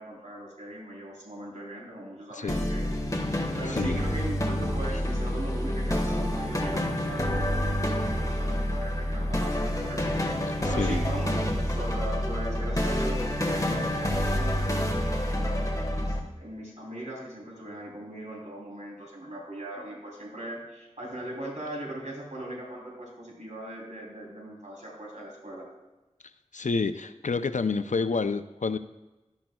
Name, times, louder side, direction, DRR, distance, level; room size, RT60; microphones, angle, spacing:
voice 1, 0.0-2.9 3.6-10.4 10.6-25.7, right 1 dB, 80° right, -3 dB, 3.0 m, -39 dB
voice 2, 2.3-2.7 3.7-4.0 10.8-11.0 26.5-28.8, left 4 dB, 85° left, 11 dB, 0.4 m, -29 dB
sound 1, 2.5-16.2, left 1 dB, 30° left, 1.4 m, -28 dB
12.0 x 10.5 x 2.3 m, 1.1 s
wide cardioid pair, 40°, 12 cm